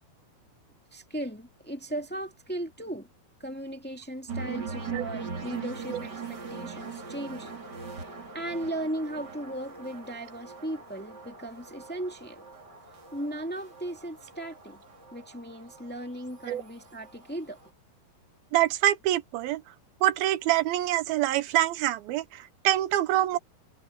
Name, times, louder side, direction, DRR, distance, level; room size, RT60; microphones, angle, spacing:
voice 1, 0.9-3.1 3.4-8.1 8.3-12.4 13.1-14.8 15.1-17.6, right 1 dB, 15° left, 0.4 m, -37 dB
sound 1, 4.3-17.7, right 5 dB, 30° right, 2.9 m, -41 dB
voice 2, 18.5-19.6 20.0-23.4, right 13 dB, 80° right, 2.5 m, -25 dB
omnidirectional pair, 4.5 m